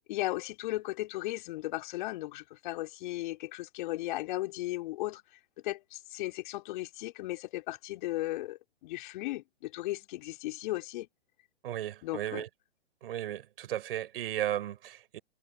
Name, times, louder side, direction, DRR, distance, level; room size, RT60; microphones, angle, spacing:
voice 1, 0.1-5.2 5.6-11.1 12.0-12.4, left 18 dB, 45° left, 3.8 m, -36 dB
voice 2, 11.6-12.5 13.0-15.2, right 12 dB, 55° right, 6.0 m, -35 dB
hypercardioid pair, 125°, 33 cm